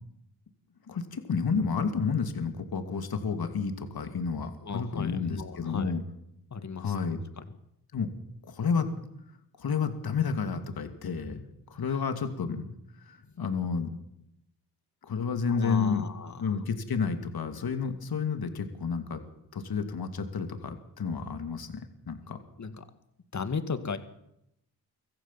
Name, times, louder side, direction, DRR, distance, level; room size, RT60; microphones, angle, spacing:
voice 1, 0.9-6.0 6.8-7.2 7.9-8.1 8.4-8.9 9.6-12.7 13.0-14.0 15.1-16.0 16.4-19.2 19.5-21.8 22.1-22.4, left 5 dB, 65° left, 8 dB, 2.6 m, -30 dB
voice 2, 4.6-6.0 6.5-7.0 7.4-7.5 11.9-12.0 13.2-13.3 15.5-16.6 22.6-22.9 23.3-24.0, left 5 dB, 45° left, 10 dB, 2.1 m, -36 dB
24.5 x 14.5 x 7.5 m, 0.80 s
cardioid pair, 70°, 40 cm